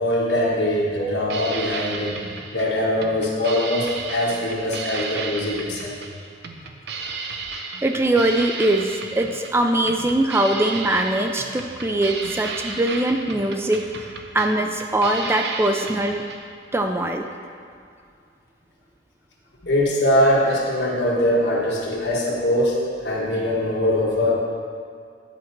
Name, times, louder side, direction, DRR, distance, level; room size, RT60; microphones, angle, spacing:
voice 1, 0.0-2.2 2.5-6.0 19.6-24.3, left 1 dB, 75° left, -3 dB, 1.3 m, -22 dB
sound 1, 1.2-16.4, right 4 dB, 65° right, 0.6 m, -34 dB
voice 2, 7.8-13.8 14.3-16.2 16.7-17.2, right 1 dB, 15° right, 4 dB, 0.3 m, -22 dB
9.9 x 4.1 x 4.5 m, 2.3 s
head